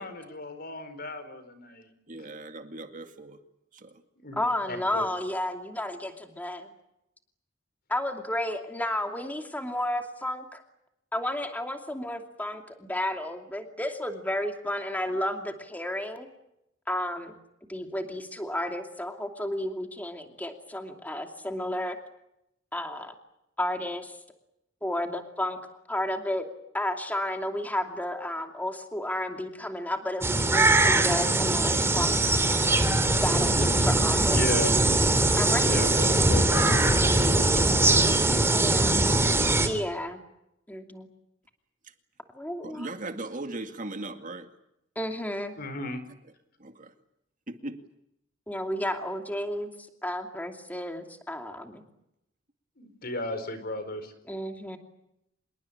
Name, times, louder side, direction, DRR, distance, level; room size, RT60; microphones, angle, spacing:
voice 1, 0.0-1.9 4.2-4.4 4.7-5.1 34.3-34.7 35.6-38.6 39.1-39.4 45.6-46.0 52.8-54.1, left 2 dB, 55° left, 4.6 m, -35 dB
voice 2, 2.1-3.4 3.8-3.9 42.6-44.5 46.6-46.9 47.5-47.8, right 2 dB, 45° right, 2.2 m, -38 dB
voice 3, 4.3-6.7 7.9-10.6 11.1-16.3 16.9-17.3 17.7-22.0 22.7-23.1 23.6-24.2 24.8-25.6 25.9-26.5 26.7-32.4 33.1-34.4 35.3-35.7 38.5-39.0 39.6-40.2 40.7-41.1 42.3-42.9 45.0-45.5 48.5-49.7 50.0-51.8 54.3-54.8, left 1 dB, 10° left, 2.7 m, -32 dB
sound 1, 30.2-39.7, right 2 dB, 15° right, 3.2 m, -22 dB
27.0 x 22.0 x 8.7 m
head